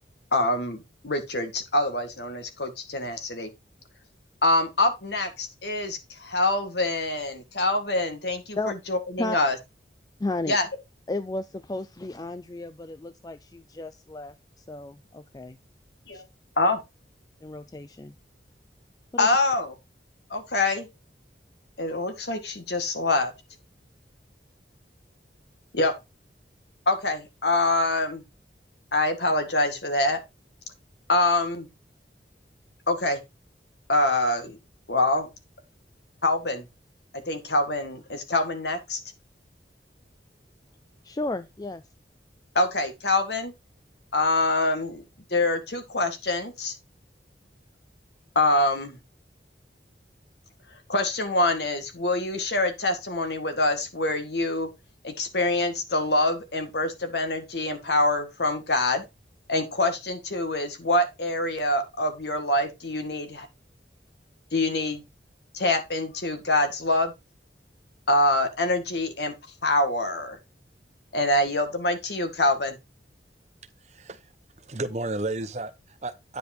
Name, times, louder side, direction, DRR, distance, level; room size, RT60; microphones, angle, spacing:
voice 1, 0.3-3.5 4.4-9.6 10.5-10.7 16.1-16.2 16.6-16.8 19.2-19.7 20.3-20.9 21.8-23.3 25.7-25.9 26.8-28.2 28.9-30.2 31.1-31.7 32.9-33.2 33.9-34.6 34.9-35.3 36.2-36.6 37.1-39.0 42.5-43.5 44.1-45.0 45.3-46.7 48.3-49.0 50.9-54.7 55.0-59.0 59.5-63.5 64.5-65.0 65.5-67.1 68.1-69.3 69.6-70.4 71.1-72.8, left 2 dB, 70° left, 1.8 m, -25 dB
voice 2, 10.2-10.6 11.1-15.6 16.1-16.2 17.4-18.1 19.1-19.3 41.0-41.8, left 2 dB, 20° left, 0.4 m, -33 dB
voice 3, 73.8-74.2 74.6-76.4, right 2 dB, 40° right, 0.8 m, -33 dB
9.6 x 5.1 x 4.3 m
head